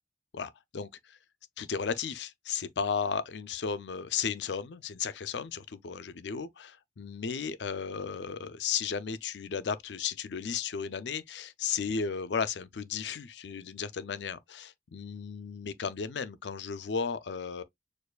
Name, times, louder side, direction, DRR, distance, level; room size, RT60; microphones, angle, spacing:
voice 1, 0.3-1.2 1.6-17.6, left 6 dB, 80° left, 0.5 m, -34 dB
6.6 x 2.6 x 2.3 m
head